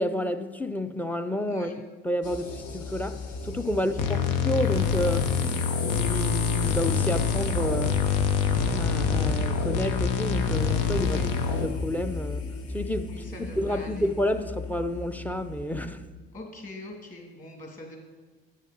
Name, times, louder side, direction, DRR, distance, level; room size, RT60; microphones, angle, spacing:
voice 1, 0.0-1.7 2.0-5.3 5.8-8.0 8.8-11.2 11.5-12.4 12.7-13.1 13.4-16.0, equal, 5° left, 0.5 m, -30 dB
sound 1, 2.2-16.1, left 2 dB, 55° left, 1.1 m, -35 dB
voice 2, 3.7-4.2 11.0-11.3 13.1-14.1 16.3-18.0, left 1 dB, 30° left, 2.7 m, -42 dB
sound 2, 4.0-11.7, left 6 dB, 80° left, 0.9 m, -26 dB
8.7 x 6.5 x 5.2 m
supercardioid pair, 80°, 29 cm